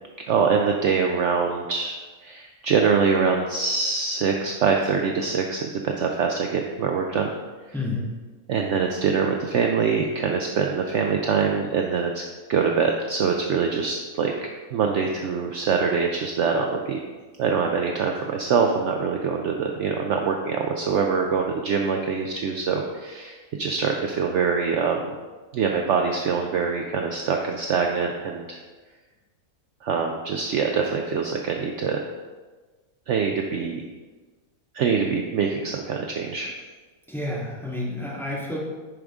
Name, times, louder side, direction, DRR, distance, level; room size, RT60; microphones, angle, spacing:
voice 1, 0.3-7.3 7.7-7.8 8.5-12.2 12.5-14.3 14.7-17.0 17.4-25.1 25.5-28.6 29.8-32.0 33.1-33.8 34.7-36.5, right 5 dB, 65° right, 2 dB, 0.8 m, -24 dB
voice 2, 7.7-8.1 37.1-38.6, left 2 dB, ahead, -6 dB, 1.7 m, -29 dB
10.0 x 5.1 x 3.6 m, 1.3 s
omnidirectional pair, 1.5 m